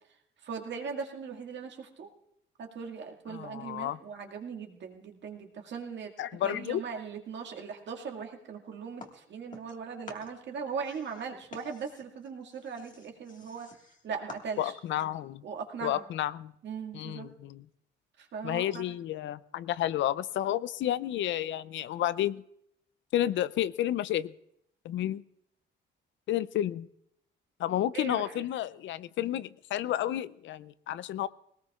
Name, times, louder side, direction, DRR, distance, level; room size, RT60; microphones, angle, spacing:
voice 1, 0.4-2.1 2.6-6.1 6.4-13.7 14.0-14.7 15.0-15.1 15.4-16.1 16.6-17.3 18.2-18.8 27.9-28.4, right 6 dB, 65° right, 2 dB, 2.0 m, -39 dB
voice 2, 3.3-4.0 6.2-6.8 14.6-15.4 15.8-16.5 16.9-17.6 18.4-22.4 23.1-24.3 24.8-25.2 26.3-26.9 27.6-31.3, left 12 dB, 70° left, 17 dB, 0.5 m, -31 dB
sound 1, 9.0-9.8 10.0-14.9, left 4 dB, 40° left, 1.7 m, -51 dB
20.5 x 18.0 x 2.4 m, 0.73 s
cardioid pair, 90°, 20 cm